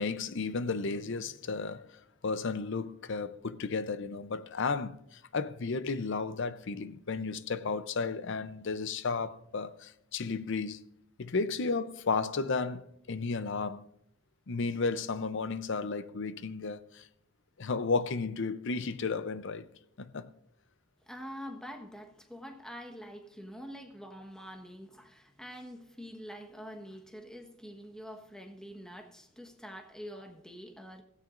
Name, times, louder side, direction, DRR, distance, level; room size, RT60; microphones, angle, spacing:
voice 1, 0.0-1.9 2.2-10.8 11.2-13.8 14.5-17.1 17.6-19.7 20.0-20.3, left 4 dB, 65° left, 0.6 m, -33 dB
voice 2, 21.0-31.0, equal, 5° left, 1.2 m, -46 dB
16.5 x 15.5 x 2.5 m
head